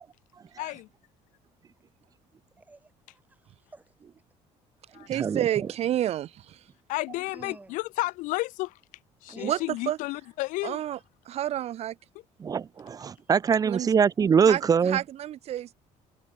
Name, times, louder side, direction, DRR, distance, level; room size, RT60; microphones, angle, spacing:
voice 1, 0.6-0.9 4.9-5.1 6.9-8.7 9.2-10.8, left 20 dB, 85° left, 1.9 m, -32 dB
voice 2, 2.6-3.9 7.1-7.8 9.3-9.7 10.0-10.1, right 2 dB, 10° right, 7.7 m, -49 dB
voice 3, 5.1-6.6 9.4-10.0 10.6-11.0 11.2-12.0 13.6-13.9 14.4-15.7, right 12 dB, 55° right, 3.4 m, -29 dB
voice 4, 12.4-15.0, right 6 dB, 30° right, 1.1 m, -23 dB
cardioid pair, 145°, 13 cm